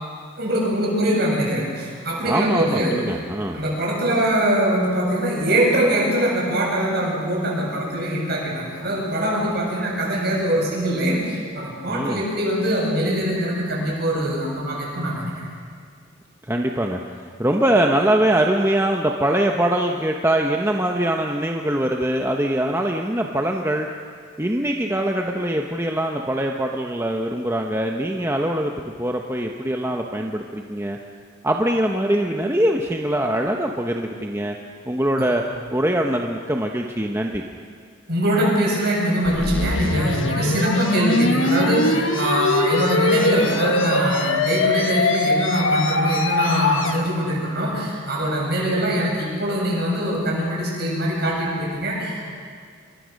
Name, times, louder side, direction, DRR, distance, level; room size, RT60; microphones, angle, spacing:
voice 1, 0.4-2.9 3.5-15.5 38.1-52.3, right 1 dB, 50° right, -3 dB, 7.9 m, -23 dB
voice 2, 2.3-3.6 11.9-12.2 16.5-17.0 17.4-23.9 24.4-28.7 29.0-31.0 31.4-34.6 34.9-35.4 35.7-37.4, right 1 dB, 10° right, 2 dB, 0.9 m, -22 dB
sound 1, 39.3-47.0, left 2 dB, 75° left, 1.5 m, -22 dB
28.0 x 23.0 x 6.5 m, 2.1 s
head